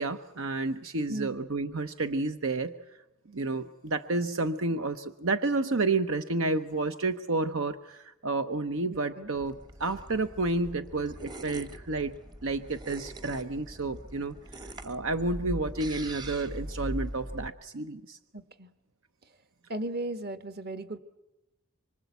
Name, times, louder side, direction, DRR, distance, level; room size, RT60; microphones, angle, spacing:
voice 1, 0.0-2.7 3.3-12.2 12.4-14.3 14.8-18.2, right 3 dB, 75° right, 9 dB, 0.9 m, -30 dB
voice 2, 8.9-9.3 18.3-18.7 19.7-21.0, right 1 dB, 50° right, 10 dB, 1.4 m, -36 dB
sound 1, 9.3-17.5, right 1 dB, 20° right, 1.0 m, -41 dB
25.0 x 24.5 x 8.2 m, 0.94 s
head